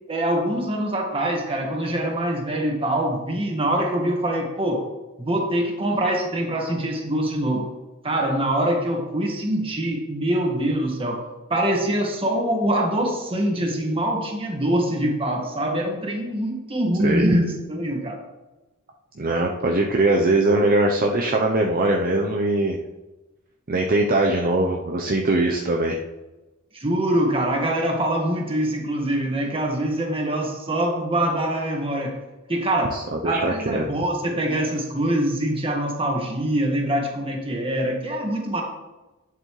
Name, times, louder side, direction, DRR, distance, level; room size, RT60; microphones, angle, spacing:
voice 1, 0.1-4.9 5.2-7.7 8.0-11.2 11.5-18.2 26.7-32.2 32.5-38.6, right 1 dB, 25° right, 1 dB, 1.8 m, -24 dB
voice 2, 19.2-22.8 23.7-26.0 32.9-33.8, right 2 dB, 40° right, 1 dB, 0.7 m, -21 dB
11.5 x 7.9 x 3.2 m, 1.1 s
head